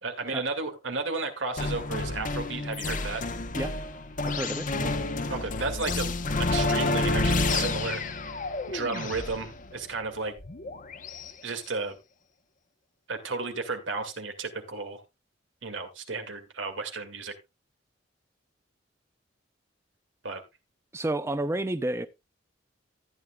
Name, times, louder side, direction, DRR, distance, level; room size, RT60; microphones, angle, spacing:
voice 1, 0.0-3.2 5.3-6.1 6.5-8.0 8.7-10.4 11.4-12.0 13.1-15.0 15.6-17.3 20.2-20.4, right 3 dB, 85° right, 2.2 m, -33 dB
sound 1, 1.6-11.3, left 2 dB, 45° left, 0.9 m, -30 dB
voice 2, 4.2-4.9 20.9-22.1, right 1 dB, 15° right, 0.5 m, -30 dB
14.0 x 9.5 x 2.3 m
head